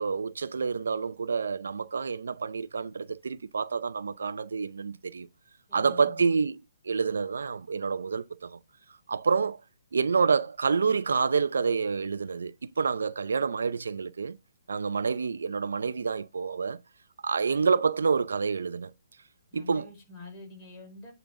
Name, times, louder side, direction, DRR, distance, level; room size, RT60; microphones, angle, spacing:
voice 1, 0.0-5.3 5.7-6.6 6.8-8.6 9.1-9.6 9.9-14.4 14.7-16.8 17.2-18.9 19.5-19.9, right 5 dB, 85° right, 0.6 m, -28 dB
voice 2, 5.7-6.3 19.5-21.1, left 3 dB, 20° left, 4.5 m, -46 dB
9.0 x 3.9 x 5.0 m
hypercardioid pair, 170°, 0 cm